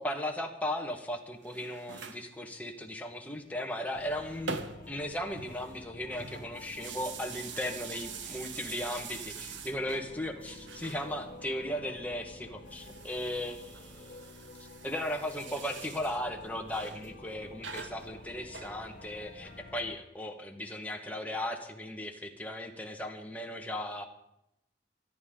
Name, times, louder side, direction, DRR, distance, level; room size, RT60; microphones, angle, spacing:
voice 1, 0.0-24.1, left 1 dB, 10° left, 2 dB, 1.4 m, -37 dB
sound 1, 1.3-2.3 3.7-5.0 5.3-10.1 10.4-11.5 12.6-16.2 16.7-17.1 17.6-19.2, right 5 dB, 85° right, 1.1 m, -45 dB
sound 2, 3.9-19.9, left 2 dB, 55° left, 1.5 m, -50 dB
24.5 x 10.5 x 3.8 m, 0.82 s
head